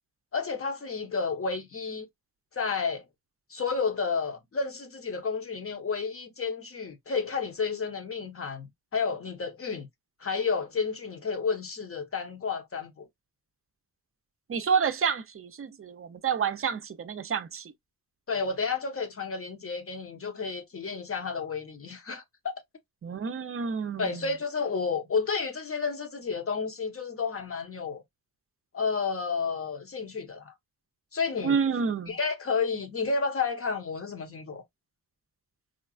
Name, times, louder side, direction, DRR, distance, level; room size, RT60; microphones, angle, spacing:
voice 1, 0.3-2.1 2.5-3.0 3.5-9.9 10.2-13.1 18.3-22.5 24.0-28.0 28.7-30.5 31.1-31.6 32.1-34.6, left 5 dB, 35° left, 0.8 m, -31 dB
voice 2, 14.5-17.7 23.0-24.2 31.4-32.2, right 6 dB, 35° right, 0.5 m, -29 dB
5.0 x 2.2 x 2.3 m
wide cardioid pair, 160°, 37 cm